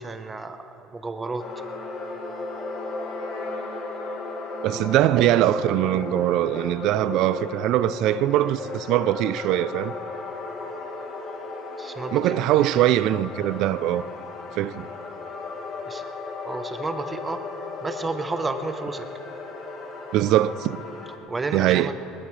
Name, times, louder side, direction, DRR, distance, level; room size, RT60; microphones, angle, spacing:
voice 1, 0.0-1.4 11.8-12.9 15.8-16.1 16.4-17.4 17.8-19.1 21.3-21.9, right 3 dB, 15° right, 0.9 m, -31 dB
Wind instrument woodwind instrument, 1.4-5.6, left 2 dB, 75° left, 3.7 m, -44 dB
sound 1, 1.4-21.2, left 3 dB, 50° left, 2.1 m, -35 dB
voice 2, 4.6-9.9 12.1-14.0 14.6-14.9 20.1-20.8 21.5-21.9, right 13 dB, 60° right, 0.4 m, -22 dB
20.0 x 20.0 x 3.3 m
cardioid pair, 135°, 0 cm